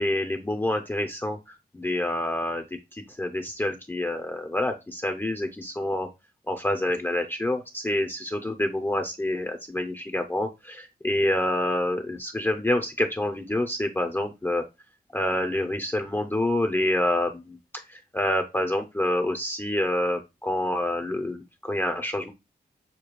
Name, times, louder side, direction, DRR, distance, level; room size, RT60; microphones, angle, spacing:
voice 1, 0.0-2.6 2.9-6.1 6.5-14.6 15.1-17.6 17.9-22.3, left 1 dB, 15° left, 5 dB, 0.5 m, -27 dB
6.6 x 2.2 x 3.0 m, 0.24 s
wide cardioid pair, 100°, 16 cm